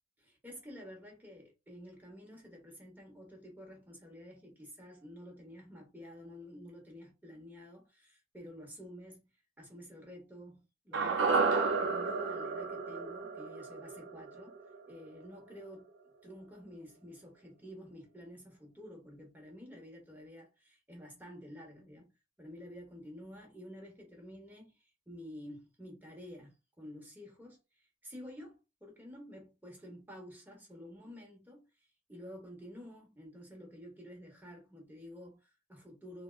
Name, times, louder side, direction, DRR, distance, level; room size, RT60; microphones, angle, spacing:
voice 1, 0.2-9.3 9.6-14.5 14.9-15.9 16.2-22.1 22.4-31.6 32.1-36.2, equal, 10° right, 0.9 m, -50 dB
sound 1, 10.9-15.2 15.5-15.6, right 4 dB, 65° right, 0.5 m, -32 dB
3.4 x 2.1 x 2.3 m
head